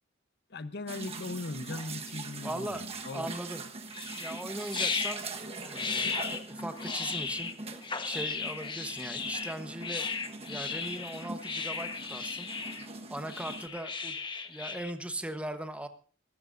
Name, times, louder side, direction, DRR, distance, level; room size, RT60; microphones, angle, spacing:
voice 1, 0.5-3.3 6.0-6.2, left 2 dB, 55° left, 12 dB, 0.9 m, -39 dB
sound 1, 0.9-13.7, right 3 dB, 30° right, 1.3 m, -43 dB
voice 2, 2.4-2.8 3.1-3.6 4.1-5.3 5.7-7.5 8.0-10.1 10.5-12.5 13.1-14.2 14.5-15.9, right 1 dB, 5° right, 7 dB, 1.1 m, -39 dB
sound 2, 3.9-14.9, left 5 dB, 25° left, 1.2 m, -36 dB
27.0 x 14.5 x 2.6 m, 0.39 s
head